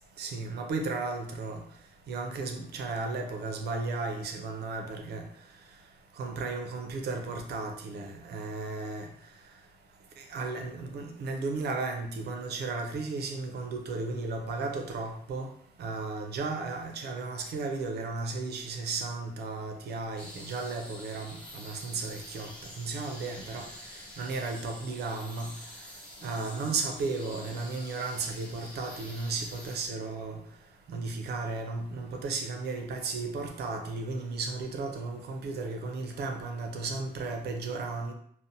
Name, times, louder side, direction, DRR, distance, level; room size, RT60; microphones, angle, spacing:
voice 1, 0.2-1.6 2.1-5.2 6.2-9.1 10.2-15.5 15.8-22.5 22.8-23.7 24.2-25.5 26.2-30.4 30.9-38.1, right 3 dB, 70° right, 4 dB, 0.5 m, -34 dB
sound 1, 20.2-29.9, equal, 5° left, 0.8 m, -47 dB
Marimba xylophone, 26.1-28.8, left 1 dB, 50° left, 0.6 m, -56 dB
2.5 x 2.0 x 2.7 m, 0.65 s
wide cardioid pair, 140°, 17 cm